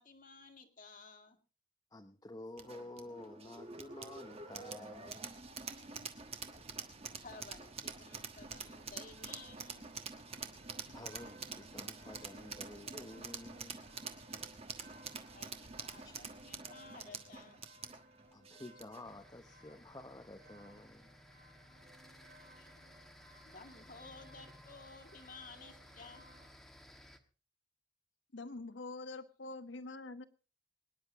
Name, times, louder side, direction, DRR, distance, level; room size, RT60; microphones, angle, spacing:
voice 1, 0.0-1.4 7.0-9.9 15.3-17.6 22.5-22.8 23.4-26.3, left 3 dB, 45° left, 2.0 m, -55 dB
voice 2, 1.9-5.3 10.8-13.8 16.0-16.2 18.3-21.1, left 1 dB, 20° left, 0.8 m, -51 dB
sound 1, 2.6-19.1, right 5 dB, 30° right, 1.4 m, -47 dB
sound 2, 8.4-26.5, right 1 dB, 50° right, 4.0 m, -62 dB
sound 3, 19.0-27.2, equal, ahead, 1.3 m, -58 dB
voice 3, 28.3-30.2, left 3 dB, 65° left, 1.1 m, -45 dB
23.5 x 10.5 x 3.6 m
head